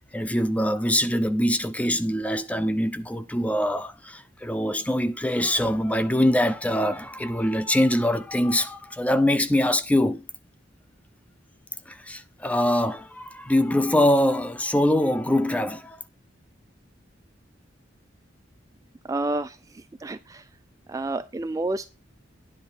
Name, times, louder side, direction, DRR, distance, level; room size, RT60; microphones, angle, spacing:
voice 1, 0.1-10.3 11.9-16.0, left 1 dB, 10° left, 0.7 m, -23 dB
voice 2, 19.1-19.6 20.0-20.4 20.9-21.9, right 2 dB, 20° right, 0.4 m, -29 dB
10.0 x 4.0 x 7.3 m
head